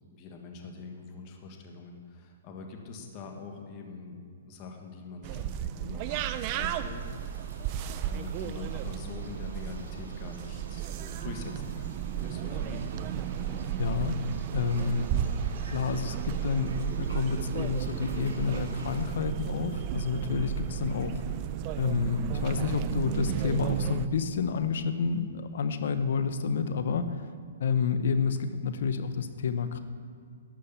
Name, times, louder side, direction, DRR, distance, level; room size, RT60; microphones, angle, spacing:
voice 1, 0.1-7.0 8.0-10.9 11.2-13.0, left 4 dB, 35° left, 3 dB, 1.4 m, -43 dB
sound 1, 5.2-24.1, right 10 dB, 35° right, 0.4 m, -33 dB
sound 2, 6.1-19.1, right 3 dB, 90° right, 2.2 m, -50 dB
voice 2, 13.8-14.2 14.5-15.1 15.7-21.2 21.7-27.3 27.6-29.8, left 5 dB, 65° left, 10 dB, 0.8 m, -29 dB
11.5 x 6.4 x 6.9 m, 2.2 s
hypercardioid pair, 150°, 0 cm